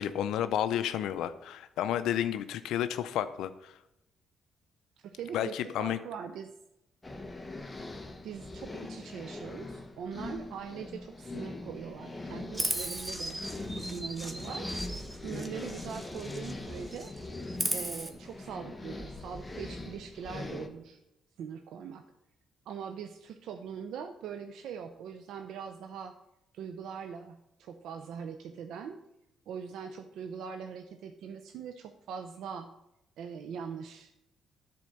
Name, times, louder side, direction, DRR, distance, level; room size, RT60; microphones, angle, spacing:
voice 1, 0.0-3.8 5.3-6.0, left 10 dB, 85° left, 11 dB, 0.5 m, -31 dB
voice 2, 5.0-6.5 8.2-13.4 13.8-14.7 15.1-17.1 17.7-21.0 21.4-22.0 22.7-26.2 26.5-29.0 29.5-32.7 33.2-34.2, right 7 dB, 80° right, 6 dB, 0.6 m, -42 dB
sound 1, 7.0-20.7, left 2 dB, 15° left, 1.1 m, -42 dB
Chirp tweet, 12.5-16.6 16.9-18.1, right 1 dB, 15° right, 1.1 m, -37 dB
10.5 x 4.3 x 6.4 m, 0.86 s
cardioid pair, 90°, 0 cm